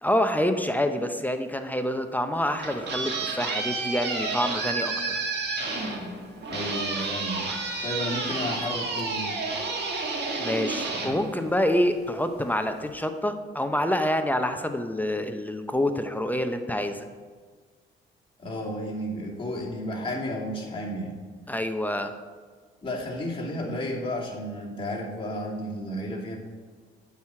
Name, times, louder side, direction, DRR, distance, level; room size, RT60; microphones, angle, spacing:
voice 1, 0.0-5.1 10.4-17.1 21.5-22.1, left 1 dB, 10° left, 7 dB, 0.7 m, -27 dB
sound 1, 2.3-12.0, right 3 dB, 55° right, 2.0 m, -31 dB
voice 2, 6.5-7.5 7.8-9.3 18.4-21.2 22.8-26.4, equal, 25° left, -3 dB, 2.6 m, -32 dB
9.1 x 4.8 x 7.6 m, 1.5 s
cardioid pair, 90°, 20 cm